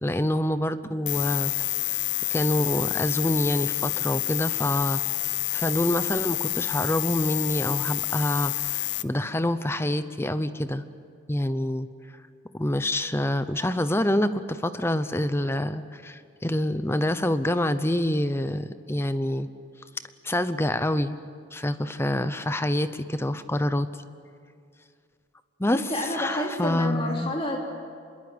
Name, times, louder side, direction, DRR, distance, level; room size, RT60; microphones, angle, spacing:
voice 1, 0.0-1.5 2.3-5.0 5.5-10.8 11.3-11.9 12.5-19.5 20.2-21.2 21.5-23.9 25.6-25.8 26.1-27.3, left 1 dB, 15° left, 12 dB, 0.7 m, -26 dB
sound 1, 1.1-9.0, left 16 dB, 65° left, 0.6 m, -28 dB
voice 2, 25.7-27.6, left 1 dB, 30° left, 0 dB, 3.0 m, -30 dB
26.0 x 21.5 x 8.0 m, 2.3 s
head